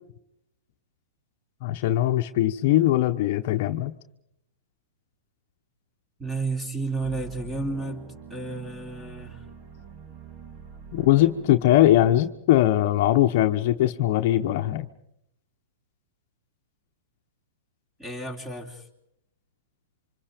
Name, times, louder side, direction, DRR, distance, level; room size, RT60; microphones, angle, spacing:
voice 1, 1.6-3.9 10.9-14.9, left 13 dB, 50° left, 7 dB, 1.0 m, -21 dB
voice 2, 6.2-9.4 18.0-18.8, right 3 dB, 10° right, 6 dB, 3.7 m, -32 dB
sound 1, 7.0-12.2, right 5 dB, 35° right, 2.1 m, -44 dB
28.0 x 25.5 x 5.1 m, 0.78 s
hypercardioid pair, 120°, 0 cm